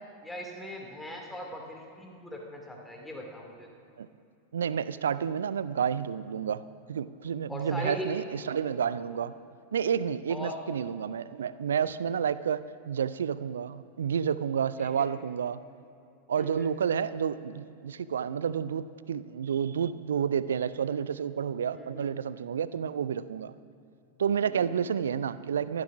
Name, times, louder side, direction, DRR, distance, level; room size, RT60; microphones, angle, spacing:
voice 1, 0.2-3.7 7.5-8.1 10.3-10.6 14.8-15.1 16.4-16.7 21.7-22.1 24.6-24.8, equal, 5° left, 0 dB, 2.5 m, -40 dB
voice 2, 4.5-6.6 6.9-9.3 9.7-15.6 16.3-23.5 24.2-25.8, right 7 dB, 65° right, 16 dB, 0.4 m, -30 dB
14.0 x 11.5 x 6.0 m, 2.5 s
figure-of-eight pair, 90°, 0 cm